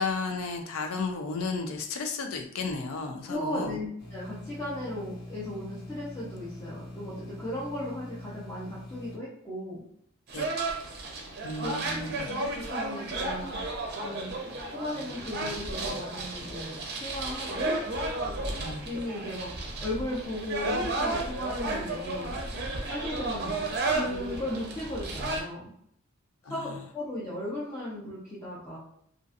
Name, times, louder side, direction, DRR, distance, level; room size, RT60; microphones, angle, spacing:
voice 1, 0.0-3.7 10.3-10.4 11.4-12.3 18.6-18.9 26.5-26.8, left 4 dB, 85° left, 4 dB, 0.4 m, -33 dB
voice 2, 3.3-9.8 11.2-11.3 11.6-11.7 12.2-13.6 14.0-14.3 14.7-17.7 18.4-18.6 18.8-19.5 19.8-22.4 22.9-23.5 23.9-25.7 26.4-28.8, left 1 dB, 15° left, -9 dB, 0.7 m, -36 dB
sound 1, 4.0-9.2, left 1 dB, 55° left, 1.0 m, -43 dB
sound 2, 10.3-25.4, right 2 dB, 55° right, 0.5 m, -33 dB
2.6 x 2.4 x 2.4 m, 0.69 s
head